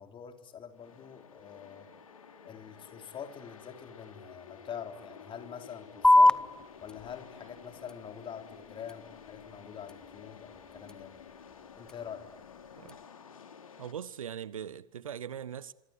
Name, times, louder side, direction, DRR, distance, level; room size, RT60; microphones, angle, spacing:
voice 1, 0.0-1.9 2.4-6.4 6.8-11.1 11.8-12.3, left 8 dB, 30° left, 3.7 m, -45 dB
sound 1, 0.7-13.9, left 6 dB, 75° left, 3.0 m, -52 dB
sound 2, 6.0-13.0, left 2 dB, 5° left, 1.1 m, -30 dB
voice 2, 13.8-15.7, right 8 dB, 75° right, 1.0 m, -40 dB
26.5 x 23.0 x 9.6 m
figure-of-eight pair, 85°, 18 cm